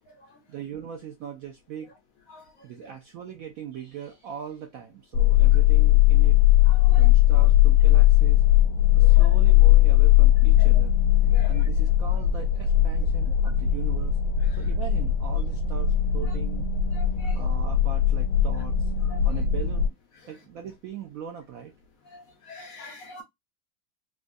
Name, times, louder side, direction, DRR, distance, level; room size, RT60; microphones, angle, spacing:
voice 1, 0.5-1.9 2.6-6.4 7.0-8.4 9.0-10.9 11.4-14.2 14.6-16.7 17.3-18.9 19.2-19.9 20.3-21.7, right 8 dB, 70° right, 0.8 m, -40 dB
voice 2, 2.3-2.9 6.7-7.1 9.0-9.3 10.6-10.7 11.3-11.6 14.5-14.7 16.9-17.4 19.1-19.2 22.1-23.2, left 2 dB, 60° left, 1.0 m, -44 dB
sound 1, 5.1-19.9, left 12 dB, 90° left, 1.3 m, -19 dB
3.8 x 2.3 x 2.5 m
omnidirectional pair, 2.0 m